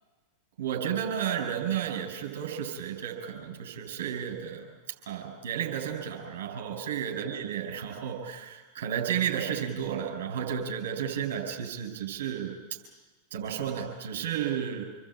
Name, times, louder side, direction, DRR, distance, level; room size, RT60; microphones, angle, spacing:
voice 1, 0.6-4.7 5.1-12.6 13.3-14.8, right 8 dB, 60° right, 2 dB, 8.0 m, -32 dB
28.5 x 22.0 x 9.0 m, 1.2 s
figure-of-eight pair, 90°, 0 cm